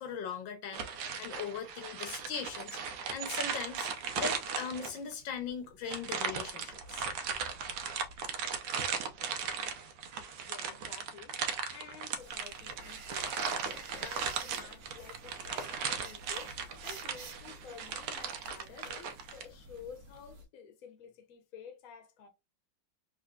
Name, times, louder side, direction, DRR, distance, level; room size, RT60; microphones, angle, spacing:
voice 1, 0.0-2.8 3.1-7.1, left 6 dB, 80° left, 1.5 m, -40 dB
sound 1, 0.7-5.1 5.9-19.5, right 6 dB, 85° right, 1.4 m, -37 dB
voice 2, 10.3-22.3, left 7 dB, 55° left, 1.1 m, -51 dB
sound 2, 12.1-20.4, right 3 dB, 55° right, 1.3 m, -52 dB
3.8 x 3.2 x 2.4 m
omnidirectional pair, 2.1 m